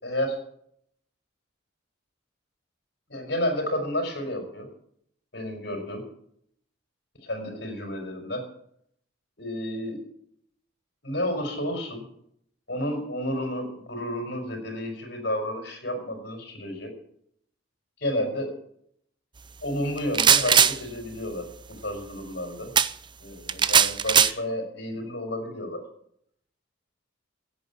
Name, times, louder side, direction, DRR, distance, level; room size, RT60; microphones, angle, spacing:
voice 1, 0.0-0.4 3.1-4.7 5.3-6.0 7.2-8.4 9.4-10.0 11.0-12.0 12.7-16.9 18.0-18.5 19.6-21.4 21.8-22.7 23.2-25.8, left 1 dB, 55° left, 3 dB, 5.3 m, -31 dB
sound 1, 20.0-20.8 22.8-22.9 23.5-24.3, right 7 dB, 25° right, 0.5 m, -18 dB
16.5 x 9.1 x 7.3 m, 0.70 s
head